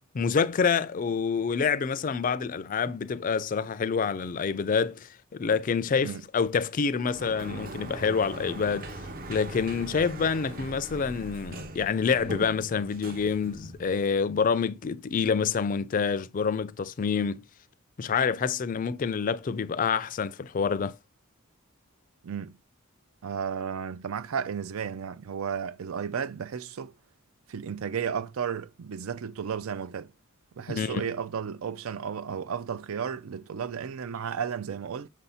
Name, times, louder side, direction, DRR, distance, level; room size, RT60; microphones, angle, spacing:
voice 1, 0.1-8.9 9.3-17.4 18.0-21.0 30.7-31.0, left 6 dB, 40° left, 0.4 m, -27 dB
Sliding door, 7.0-14.1, right 1 dB, 45° right, 0.7 m, -41 dB
voice 2, 22.2-22.6 23.2-26.9 27.5-30.1 30.6-35.1, right 7 dB, 80° right, 0.4 m, -33 dB
6.2 x 2.7 x 5.6 m
head